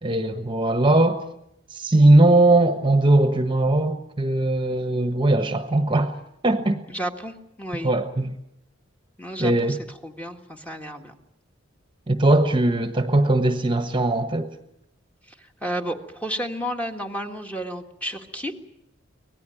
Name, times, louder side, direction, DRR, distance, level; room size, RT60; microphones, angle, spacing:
voice 1, 0.0-1.2 1.7-6.1 6.4-6.8 7.8-8.3 9.4-9.8 12.1-14.5, right 2 dB, 25° right, 1.2 m, -19 dB
voice 2, 6.9-7.9 9.2-9.8 10.0-11.1 15.4-18.5, equal, 5° left, 1.7 m, -32 dB
24.5 x 18.5 x 9.1 m
head